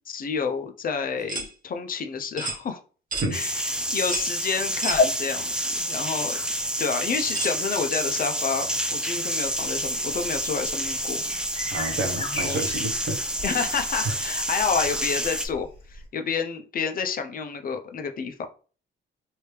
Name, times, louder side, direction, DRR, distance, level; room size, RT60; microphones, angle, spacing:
voice 1, 0.1-2.8 3.3-6.4 6.8-11.2 12.2-12.6 13.4-18.5, left 5 dB, 45° left, 0.6 m, -29 dB
sound 1, 1.3-1.5 2.4-2.6 3.1-3.3 4.1-4.3 4.8-5.0 5.9-6.0 7.3-7.6, right 3 dB, 45° right, 1.0 m, -31 dB
sound 2, 3.3-15.5, right 1 dB, 5° right, 0.4 m, -29 dB
sound 3, 9.4-16.1, left 1 dB, 25° left, 1.5 m, -40 dB
voice 2, 11.7-13.2 14.0-14.2, right 2 dB, 65° right, 0.8 m, -29 dB
3.1 x 2.7 x 3.2 m
cardioid pair, 90°, 20 cm